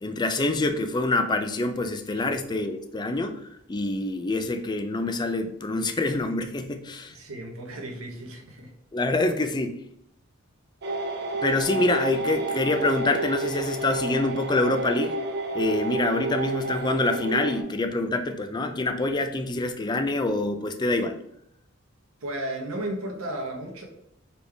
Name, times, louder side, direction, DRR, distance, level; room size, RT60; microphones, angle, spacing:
voice 1, 0.0-3.4 3.7-7.1 8.9-9.8 11.4-15.2 15.5-21.2, left 2 dB, 20° left, 7 dB, 0.4 m, -26 dB
voice 2, 7.1-8.7 22.2-23.8, right 1 dB, 90° right, 2 dB, 1.0 m, -34 dB
sound 1, 10.8-17.6, right 3 dB, 55° right, 0.6 m, -30 dB
4.2 x 3.3 x 3.4 m, 0.75 s
head